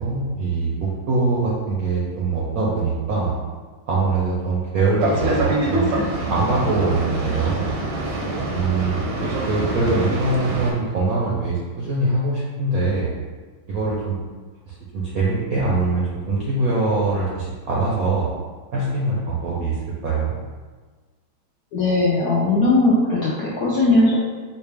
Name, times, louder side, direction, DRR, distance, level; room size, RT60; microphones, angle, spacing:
voice 1, 0.0-3.3 3.9-5.9 6.3-7.7 8.5-13.1 13.7-14.2 14.7-18.3 18.7-20.4, right 3 dB, 70° right, -6 dB, 0.8 m, -23 dB
Boat Water vehicle, 5.0-10.7, right 2 dB, 90° right, 1.6 m, -25 dB
voice 2, 21.7-24.2, left 2 dB, 80° left, -6 dB, 0.8 m, -18 dB
4.8 x 2.1 x 3.3 m, 1.4 s
omnidirectional pair, 2.2 m